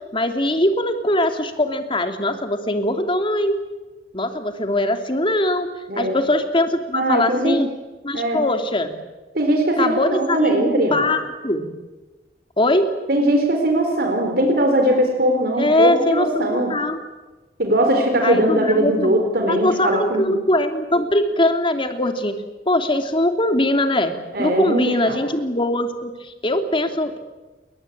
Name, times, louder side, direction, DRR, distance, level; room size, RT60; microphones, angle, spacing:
voice 1, 0.1-3.6 4.1-5.7 6.0-7.7 8.0-9.0 9.8-11.7 12.6-12.9 15.6-17.0 18.2-19.2 19.5-27.2, left 1 dB, 30° left, 6 dB, 2.9 m, -21 dB
voice 2, 6.9-7.6 8.1-8.4 9.3-11.1 13.1-16.7 17.6-20.3 24.3-25.2, right 1 dB, 55° right, 3 dB, 4.4 m, -20 dB
28.5 x 23.5 x 8.7 m, 1.2 s
head